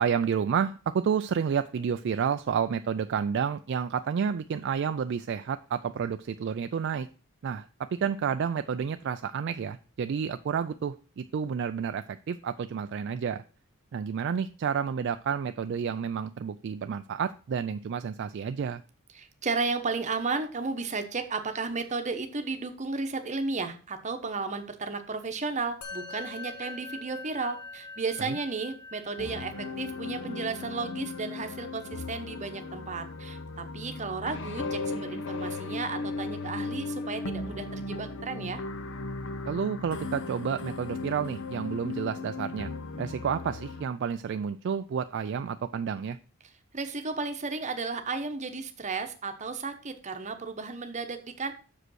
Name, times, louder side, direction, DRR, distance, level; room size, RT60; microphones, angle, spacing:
voice 1, 0.0-7.1 7.4-13.4 13.9-18.8 28.2-28.3 39.5-42.7 43.0-46.2, right 7 dB, 50° right, 10 dB, 0.3 m, -30 dB
voice 2, 19.1-38.6 46.7-51.5, right 4 dB, 35° right, 7 dB, 0.9 m, -33 dB
Musical instrument, 25.8-35.3, left 3 dB, 80° left, 1.6 m, -46 dB
sound 1, 29.2-43.8, left 3 dB, 60° left, 0.7 m, -36 dB
6.5 x 5.0 x 6.2 m, 0.38 s
head